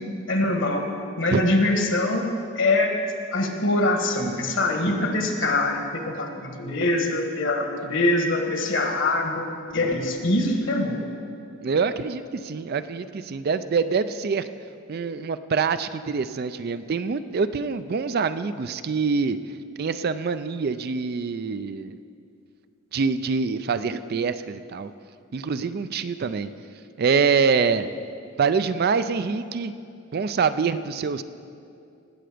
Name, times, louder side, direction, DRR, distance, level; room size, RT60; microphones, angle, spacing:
voice 1, 0.3-0.9 1.2-2.3 2.5-3.0 3.3-9.4 9.7-11.0, left 2 dB, 60° left, 4 dB, 1.4 m, -23 dB
voice 2, 11.6-14.5 14.9-19.4 19.8-21.9 22.9-24.9 25.3-26.5 27.0-27.9 28.4-29.7 30.1-31.2, right 5 dB, 45° right, 12 dB, 0.4 m, -25 dB
19.0 x 7.9 x 5.0 m, 2.5 s
head